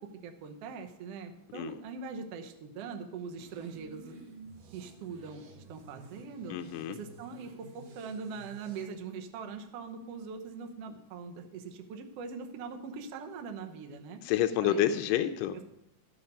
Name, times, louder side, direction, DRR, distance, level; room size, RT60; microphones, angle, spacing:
voice 1, 0.0-4.2 4.7-6.6 6.9-14.2 14.6-14.8, right 5 dB, 65° right, 4 dB, 1.6 m, -42 dB
sound 1, 3.4-8.8, right 4 dB, 80° right, 3.0 m, -52 dB
voice 2, 6.5-7.0 14.2-15.6, left 11 dB, 90° left, 8 dB, 2.2 m, -28 dB
12.0 x 7.1 x 5.4 m, 0.83 s
omnidirectional pair, 3.8 m